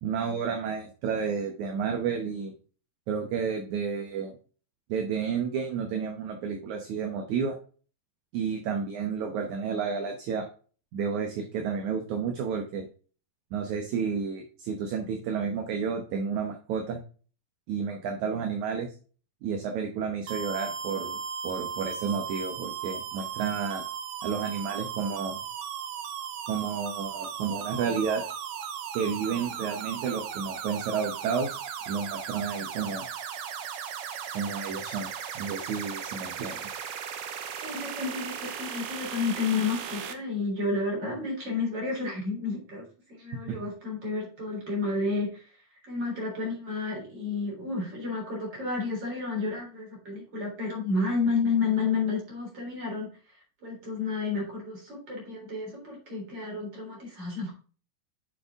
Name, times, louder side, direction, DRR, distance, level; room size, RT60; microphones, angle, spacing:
voice 1, 0.0-2.6 3.1-4.4 4.9-7.6 8.3-10.5 10.9-12.9 13.5-17.0 17.7-19.0 19.4-23.8 24.2-25.4 26.5-28.2 28.9-31.6 31.9-33.1 34.3-36.7 43.5-43.6, right 6 dB, 70° right, 3 dB, 2.3 m, -31 dB
sound 1, 20.3-40.1, right 8 dB, 85° right, 1.3 m, -37 dB
voice 2, 37.6-45.5 45.8-53.1 53.6-57.5, left 4 dB, 30° right, -1 dB, 4.1 m, -31 dB
7.4 x 7.2 x 3.6 m, 0.39 s
omnidirectional pair, 3.9 m